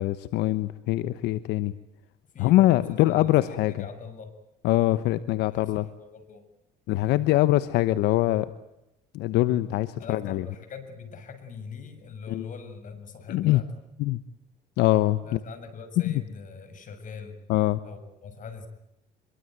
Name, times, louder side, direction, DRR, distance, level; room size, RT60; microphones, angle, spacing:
voice 1, 0.0-1.7 2.4-3.7 4.6-5.9 6.9-8.5 9.1-10.4 12.3-12.5 13.3-13.6 14.0-14.2 14.8-15.4 16.0-16.1 17.5-17.8, left 16 dB, 90° left, 14 dB, 1.1 m, -23 dB
voice 2, 2.3-4.3 5.5-6.4 10.0-13.7 15.2-17.4 17.8-18.7, left 5 dB, 50° left, 8 dB, 7.0 m, -42 dB
26.5 x 23.0 x 9.1 m, 0.88 s
cardioid pair, 110°, 17 cm